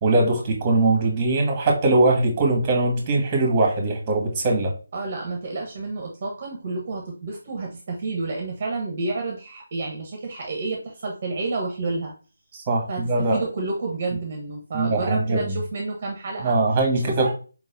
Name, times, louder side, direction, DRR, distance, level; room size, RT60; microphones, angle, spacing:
voice 1, 0.0-4.7 12.7-13.4 14.7-15.6 16.4-17.3, right 2 dB, 20° right, 2 dB, 1.7 m, -21 dB
voice 2, 4.9-12.1 12.9-16.5 16.9-17.3, right 3 dB, 35° right, 1 dB, 1.1 m, -30 dB
4.7 x 4.0 x 2.6 m, 0.35 s
figure-of-eight pair, 160°, 0 cm